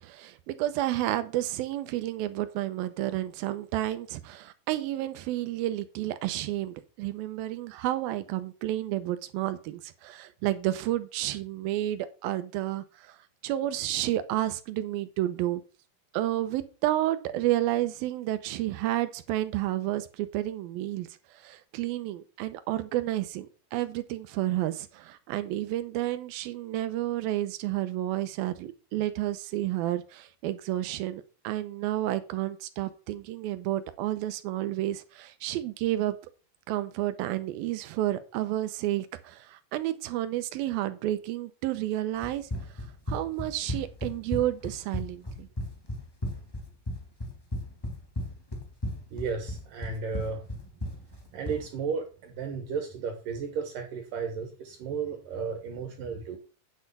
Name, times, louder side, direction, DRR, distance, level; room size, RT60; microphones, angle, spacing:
voice 1, 0.0-13.2 13.4-15.6 16.1-21.1 21.3-36.1 36.7-42.5 43.1-45.5, right 14 dB, 85° right, 11 dB, 2.7 m, -31 dB
Run, 42.2-51.7, left 1 dB, 20° left, 0.6 m, -35 dB
voice 2, 49.1-50.5 51.3-56.4, right 5 dB, 70° right, 4 dB, 2.9 m, -34 dB
9.4 x 6.6 x 5.4 m, 0.35 s
omnidirectional pair, 4.2 m